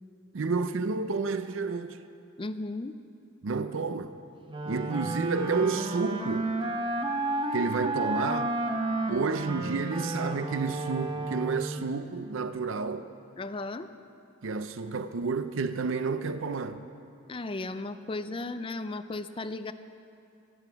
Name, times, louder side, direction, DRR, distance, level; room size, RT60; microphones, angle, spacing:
voice 1, 0.3-2.0 3.4-4.2 4.6-6.5 7.5-8.6 9.1-13.1 14.4-16.8, right 4 dB, 70° right, 0.6 m, -30 dB
voice 2, 2.4-3.0 13.4-13.9 17.3-19.7, left 2 dB, 25° left, 0.4 m, -35 dB
Wind instrument woodwind instrument, 4.5-12.0, right 2 dB, 25° right, 0.9 m, -32 dB
24.0 x 8.1 x 5.8 m
head